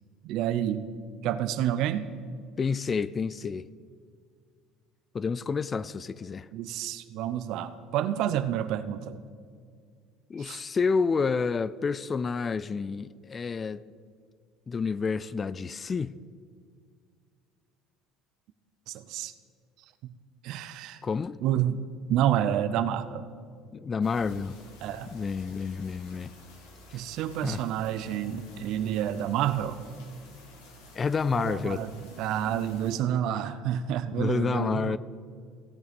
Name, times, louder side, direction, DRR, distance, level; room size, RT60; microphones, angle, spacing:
voice 1, 0.2-0.8 1.2-2.1 6.5-9.2 10.4-10.6 18.9-19.3 20.4-21.0 21.4-21.8 22.1-23.3 24.8-25.1 26.9-29.8 31.3-35.0, right 10 dB, 65° right, 0.6 m, -29 dB
voice 2, 2.6-3.7 5.1-6.5 10.3-13.8 14.7-16.1 21.0-21.4 23.7-24.6 25.1-26.3 26.9-27.0 27.4-27.6 30.9-31.9 34.2-35.0, left 5 dB, 30° left, 0.3 m, -29 dB
sound 1, 24.0-32.9, left 1 dB, 90° left, 2.3 m, -52 dB
17.0 x 6.3 x 5.3 m
supercardioid pair, 105°, 0 cm